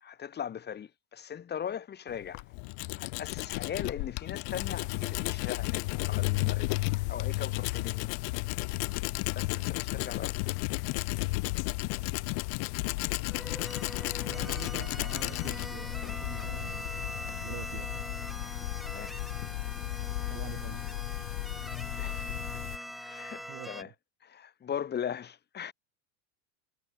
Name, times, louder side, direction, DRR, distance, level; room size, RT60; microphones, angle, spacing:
voice 1, 0.0-2.5 3.0-8.2 9.3-10.6 18.8-19.1 22.0-22.3 23.0-23.9 24.2-25.7, left 8 dB, 20° left, 2.9 m, -39 dB
Tools, 2.1-17.5, left 40 dB or more, 50° left, 2.1 m, -36 dB
sound 1, 4.5-22.8, left 21 dB, 75° left, 1.3 m, -35 dB
sound 2, 13.2-23.8, equal, ahead, 3.9 m, -42 dB
voice 2, 14.2-17.1 17.4-18.1 20.2-21.0 23.5-23.9, right 33 dB, 50° right, 4.3 m, -46 dB
supercardioid pair, 155°, 48 cm